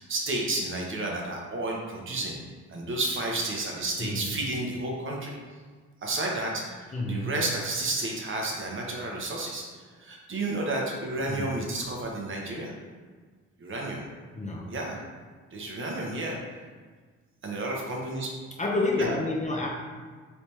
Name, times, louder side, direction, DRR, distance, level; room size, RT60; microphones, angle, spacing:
voice 1, 0.0-2.4 2.7-5.3 6.0-12.7 13.6-14.0 14.7-15.0 15.5-16.4 17.4-18.3 19.0-19.2, right 2 dB, 40° right, -1 dB, 0.8 m, -31 dB
voice 2, 4.0-4.3 6.9-7.3 11.3-11.6 14.3-14.7 18.6-19.7, left 2 dB, 25° left, -2 dB, 0.6 m, -29 dB
3.3 x 3.2 x 2.8 m, 1.5 s
cardioid pair, 90°, 30 cm